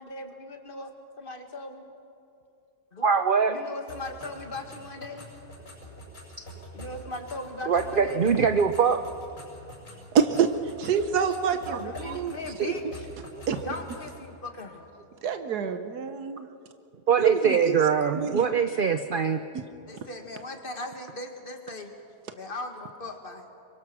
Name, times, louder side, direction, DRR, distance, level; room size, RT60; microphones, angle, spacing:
voice 1, 0.0-0.9 1.2-1.9 2.9-3.1 3.5-5.3 6.7-8.3 11.8-13.1 13.6-14.9 19.9-21.9 22.3-23.4, left 2 dB, 35° left, 5 dB, 2.0 m, -38 dB
voice 2, 3.0-3.6 7.7-9.0 13.3-13.4 17.1-19.4, right 6 dB, 55° right, 9 dB, 0.6 m, -23 dB
sound 1, 3.9-14.2, equal, 60° left, 8.2 m, -45 dB
voice 3, 10.1-12.3 12.6-12.7 13.5-13.6 15.2-16.5 17.2-17.8 18.1-18.4 19.5-19.6, right 7 dB, 80° right, 8 dB, 1.5 m, -26 dB
27.0 x 24.0 x 6.1 m, 2.6 s
omnidirectional pair, 1.7 m